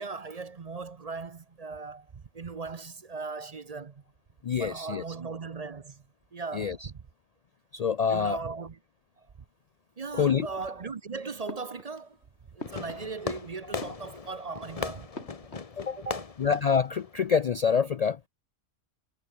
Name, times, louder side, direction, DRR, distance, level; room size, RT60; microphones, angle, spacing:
voice 1, 0.0-2.1 2.3-4.0 4.6-6.0 6.3-7.0 8.1-8.8 10.0-12.2 12.5-15.1 16.0-16.2, right 4 dB, 40° right, 0.7 m, -38 dB
voice 2, 4.4-5.0 6.5-6.9 7.7-8.4 10.1-10.5 15.8-16.0 16.4-18.2, left 6 dB, 90° left, 0.3 m, -26 dB
sound 1, 10.4-11.1 11.4-13.4 13.7-14.5 15.1-16.1 16.4-16.9, left 3 dB, 55° left, 3.7 m, -46 dB
Fireworks, 12.6-17.7, left 5 dB, 30° left, 0.9 m, -39 dB
omnidirectional pair, 1.3 m